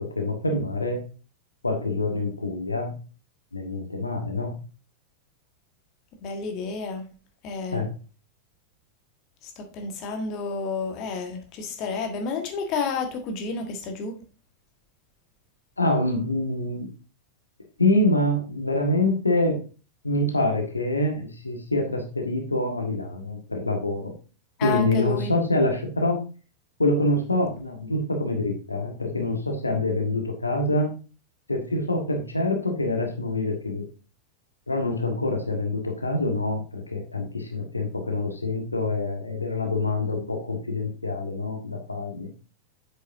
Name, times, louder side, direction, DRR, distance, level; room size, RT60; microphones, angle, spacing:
voice 1, 0.1-1.1 1.6-3.0 3.5-4.6 7.7-7.9 15.8-16.9 17.8-19.6 20.0-24.1 24.6-26.2 26.8-30.9 31.5-33.8 34.7-42.3, left 2 dB, 80° left, 3 dB, 1.4 m, -26 dB
voice 2, 6.2-7.1 7.4-7.8 9.6-14.1 24.6-25.3, left 4 dB, 40° left, 4 dB, 1.5 m, -30 dB
8.0 x 6.4 x 2.6 m, 0.34 s
figure-of-eight pair, 90°, 0 cm